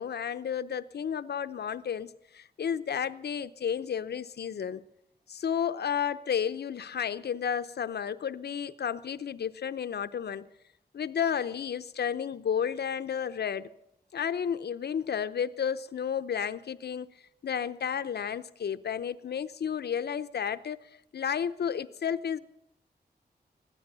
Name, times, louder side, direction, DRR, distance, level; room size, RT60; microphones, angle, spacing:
voice 1, 0.0-4.8 5.3-10.5 10.9-13.7 14.1-17.1 17.4-20.8 21.1-22.4, left 8 dB, 75° left, 0.7 m, -32 dB
16.0 x 12.5 x 6.9 m
cardioid pair, 65°, 17 cm